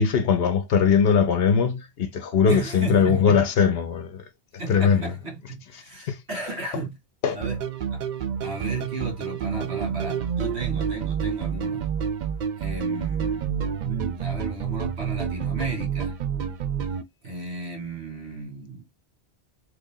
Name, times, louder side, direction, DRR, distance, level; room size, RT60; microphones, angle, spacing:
voice 1, 0.0-4.2 4.7-5.1 6.1-6.2 7.2-7.4, left 6 dB, 70° left, 0.9 m, -20 dB
voice 2, 2.5-3.5 4.6-7.0 7.3-7.6 7.9-8.0 8.4-11.9 12.6-16.2 17.2-18.9, right 3 dB, 85° right, 1.8 m, -34 dB
sound 1, 7.4-17.0, right 7 dB, 55° right, 0.5 m, -29 dB
3.2 x 2.5 x 3.7 m
omnidirectional pair, 1.1 m